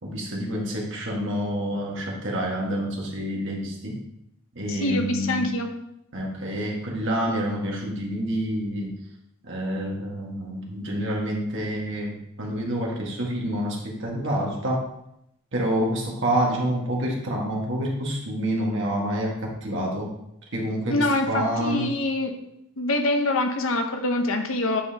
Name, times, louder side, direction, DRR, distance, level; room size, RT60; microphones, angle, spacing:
voice 1, 0.0-4.0 4.5-5.4 6.1-9.0 9.4-14.9 15.5-20.1 20.5-21.9, equal, 60° right, -2 dB, 1.7 m, -28 dB
voice 2, 4.7-5.7 20.9-22.3 22.8-24.8, left 2 dB, 70° left, 4 dB, 0.9 m, -25 dB
9.0 x 5.6 x 2.9 m, 0.79 s
head